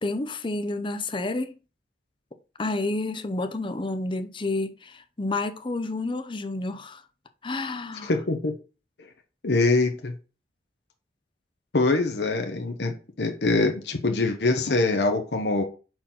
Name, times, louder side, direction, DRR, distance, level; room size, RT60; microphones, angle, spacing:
voice 1, 0.0-1.5 2.6-7.0 7.4-8.1, left 2 dB, 30° left, 0.6 m, -30 dB
voice 2, 8.0-8.5 9.4-10.1 11.7-15.6, left 3 dB, 65° left, 0.9 m, -24 dB
5.8 x 4.4 x 3.8 m
head